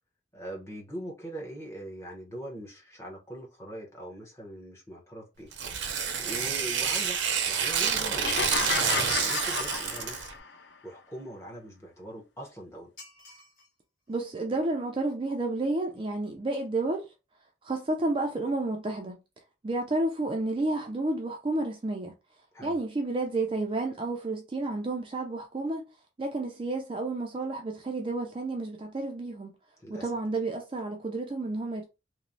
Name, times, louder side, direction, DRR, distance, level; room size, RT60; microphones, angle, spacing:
voice 1, 0.3-5.5 6.2-10.3 10.8-12.9 22.5-22.8 29.8-30.1, right 1 dB, 15° left, 0.7 m, -42 dB
Tearing, 5.5-10.3, right 7 dB, 75° right, 0.5 m, -28 dB
sound 1, 8.2-10.5, left 5 dB, 70° left, 0.4 m, -32 dB
sound 2, 13.0-13.7 14.1-14.2 15.1-15.2 15.5-15.6 15.8-16.0 16.3-16.4, left 2 dB, 45° left, 1.1 m, -51 dB
voice 2, 14.1-17.1 17.6-19.2 19.6-22.1 22.6-25.9 26.2-29.5 29.9-31.8, right 2 dB, 25° right, 0.3 m, -31 dB
3.0 x 2.0 x 2.5 m
head